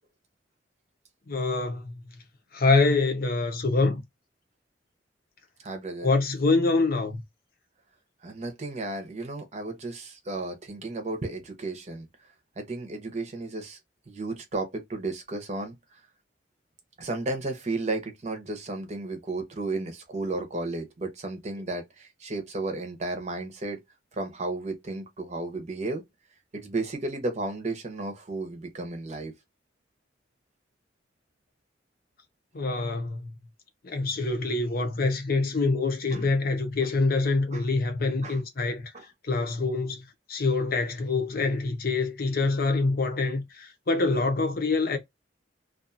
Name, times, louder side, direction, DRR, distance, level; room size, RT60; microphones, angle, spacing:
voice 1, 1.3-2.0 2.5-4.0 6.0-7.2 32.5-33.3 33.8-38.9 39.2-45.0, left 3 dB, 55° left, 0.7 m, -25 dB
voice 2, 5.6-6.1 8.2-12.1 12.6-13.8 14.1-15.8 17.0-23.8 24.1-26.0 26.5-29.3 36.1-36.2 37.5-37.6 38.2-38.4 38.9-39.0, right 2 dB, 40° right, 0.7 m, -33 dB
2.5 x 2.3 x 2.6 m
head